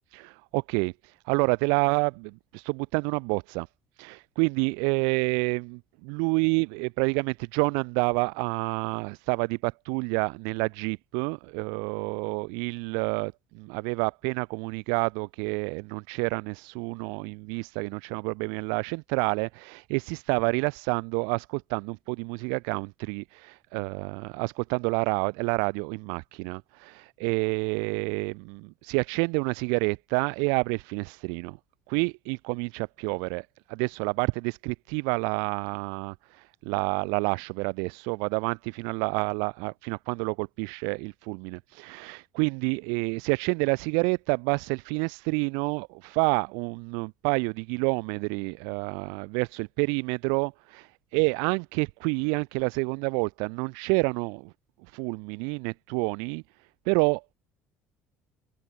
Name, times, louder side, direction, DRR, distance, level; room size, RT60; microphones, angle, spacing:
voice 1, 0.1-0.9 1.2-3.7 4.0-31.6 31.9-54.5 54.9-56.4 56.8-57.2, right 39 dB, 75° right, 1.4 m, -28 dB
hypercardioid pair, 70°, 7 cm